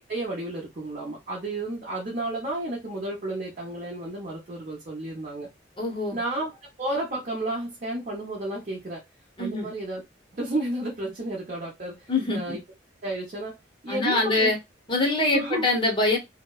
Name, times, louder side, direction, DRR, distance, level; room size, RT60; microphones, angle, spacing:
voice 1, 0.1-5.5 6.1-6.5 6.8-9.0 9.4-10.0 10.3-12.6 13.0-13.5 13.8-14.5 15.3-15.6, right 1 dB, 45° right, 0.6 m, -32 dB
voice 2, 5.8-6.2 9.4-9.7 12.1-12.6 13.9-14.6 14.9-16.2, left 2 dB, 25° left, 0.7 m, -24 dB
2.7 x 2.1 x 2.2 m
head